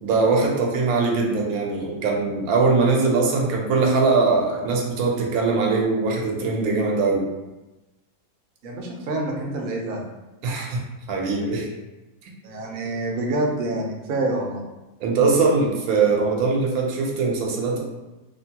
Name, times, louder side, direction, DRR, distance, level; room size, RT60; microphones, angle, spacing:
voice 1, 0.0-7.3 10.4-10.8 11.1-11.7 15.0-17.8, right 4 dB, 85° right, -1 dB, 1.1 m, -21 dB
voice 2, 8.6-10.1 12.4-14.6, right 2 dB, 60° right, -1 dB, 0.6 m, -27 dB
3.0 x 2.1 x 2.8 m, 1.1 s
omnidirectional pair, 1.5 m